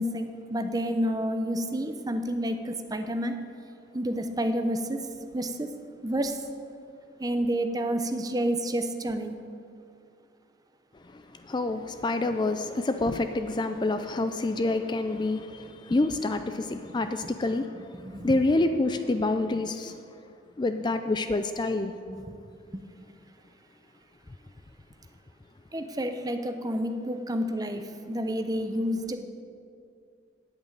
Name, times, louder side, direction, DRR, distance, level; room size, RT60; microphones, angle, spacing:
voice 1, 0.0-3.4 3.9-5.1 5.3-5.7 6.0-6.4 7.2-9.3 16.7-16.8 18.0-18.4 22.1-22.4 22.7-22.8 25.7-29.2, equal, 20° right, 0.7 m, -29 dB
voice 2, 11.0-20.0 20.6-21.9, left 2 dB, 25° left, 0.4 m, -27 dB
8.9 x 8.3 x 9.1 m
head